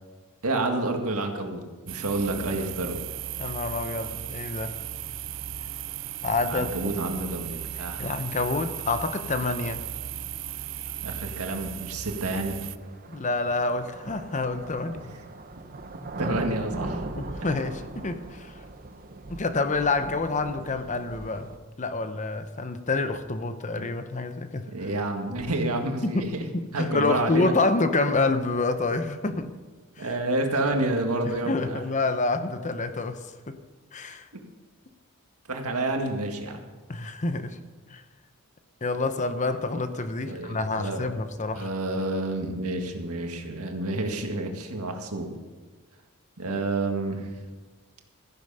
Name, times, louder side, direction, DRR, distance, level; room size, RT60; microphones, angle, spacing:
voice 1, 0.4-3.0 6.5-8.0 11.0-12.6 15.0-15.1 16.2-17.0 23.8-23.9 24.7-26.4 26.7-27.5 30.0-31.8 35.5-36.6 40.3-41.0 41.5-45.3 46.4-47.4, right 2 dB, 80° right, 4 dB, 1.8 m, -29 dB
sound 1, 1.9-12.8, right 10 dB, 60° right, 0.5 m, -36 dB
voice 2, 3.4-4.8 6.2-6.7 8.0-9.9 13.1-15.0 17.2-18.5 19.3-21.5 21.8-24.7 26.0-26.3 26.5-29.5 30.0-30.1 31.2-33.6 33.9-34.3 36.9-37.6 37.9-38.0 38.8-41.7, left 3 dB, 35° left, 10 dB, 0.8 m, -27 dB
sound 2, 11.0-11.1 12.1-21.6, right 2 dB, 40° right, 0.9 m, -39 dB
14.5 x 10.5 x 5.6 m, 1.3 s
head